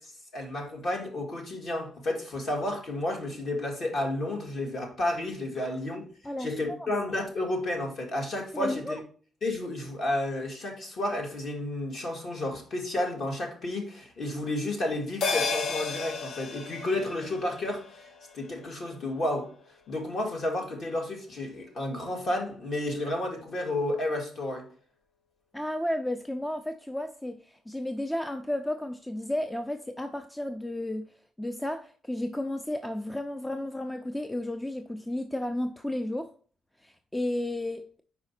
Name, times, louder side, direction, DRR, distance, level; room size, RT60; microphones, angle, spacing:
voice 1, 0.3-6.1 6.4-9.0 9.4-18.1 18.3-19.5 19.9-24.7, left 1 dB, 45° left, 1.7 m, -31 dB
voice 2, 6.2-6.9 8.5-9.0 25.5-31.1 31.4-36.3 36.8-38.0, left 1 dB, 5° left, 0.3 m, -33 dB
sound 1, 15.2-19.9 20.2-20.3, left 4 dB, 65° left, 0.7 m, -34 dB
4.9 x 4.8 x 4.2 m
cardioid pair, 175°, 0 cm